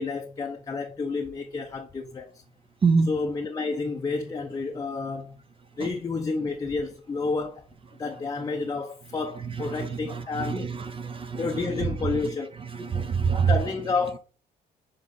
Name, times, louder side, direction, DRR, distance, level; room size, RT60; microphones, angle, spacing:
voice 1, 0.0-2.3 3.1-5.4 5.8-7.7 8.0-10.7 11.3-12.5 13.5-14.2, left 4 dB, 20° left, 0.6 m, -30 dB
voice 2, 9.4-13.7, right 5 dB, 30° right, 0.7 m, -27 dB
6.7 x 3.7 x 4.0 m
cardioid pair, 110°, 17 cm